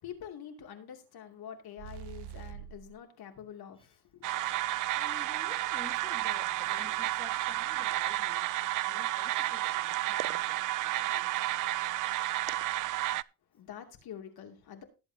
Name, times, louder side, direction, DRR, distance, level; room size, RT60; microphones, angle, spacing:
voice 1, 0.0-4.3 13.5-14.8, left 9 dB, 65° left, 2.8 m, -46 dB
sound 1, 1.8-3.0, right 9 dB, 80° right, 1.0 m, -44 dB
sound 2, 4.2-13.2, right 15 dB, 50° right, 0.5 m, -31 dB
voice 2, 4.9-8.5 8.9-10.4 11.1-11.3, left 3 dB, 15° left, 1.5 m, -51 dB
18.5 x 7.9 x 2.8 m
cardioid pair, 100°, 40 cm